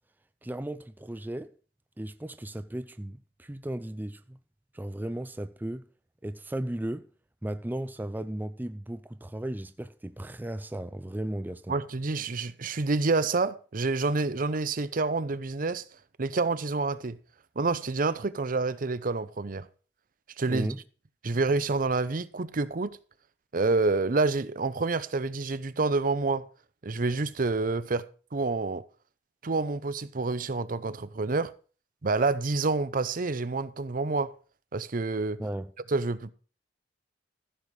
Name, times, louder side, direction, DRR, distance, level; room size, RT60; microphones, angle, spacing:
voice 1, 0.4-1.5 2.0-4.4 4.7-5.8 6.2-7.1 7.4-11.7 20.5-20.8 35.4-35.7, right 1 dB, 10° right, 0.5 m, -35 dB
voice 2, 11.7-15.8 16.2-17.2 17.6-19.7 20.4-20.7 21.2-23.0 23.5-26.5 26.8-28.0 28.3-28.8 29.4-31.5 32.0-34.3 34.7-35.4 35.9-36.3, right 3 dB, 50° right, 0.7 m, -28 dB
14.5 x 7.1 x 4.8 m
head